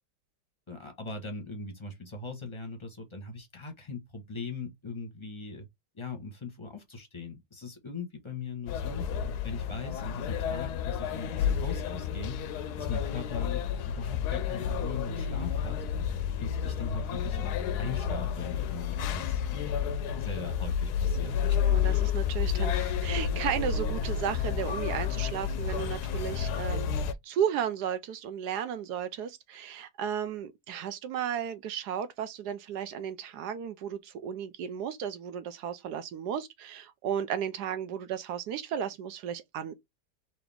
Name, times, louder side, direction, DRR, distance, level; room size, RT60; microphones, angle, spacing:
voice 1, 0.7-5.7 5.9-15.8 16.4-19.8 20.2-21.7, left 3 dB, 20° left, 0.9 m, -40 dB
sound 1, 8.7-27.1, left 8 dB, 70° left, 1.0 m, -30 dB
voice 2, 21.6-26.9 27.2-39.7, right 8 dB, 75° right, 1.1 m, -34 dB
4.0 x 2.8 x 3.4 m
omnidirectional pair, 1.9 m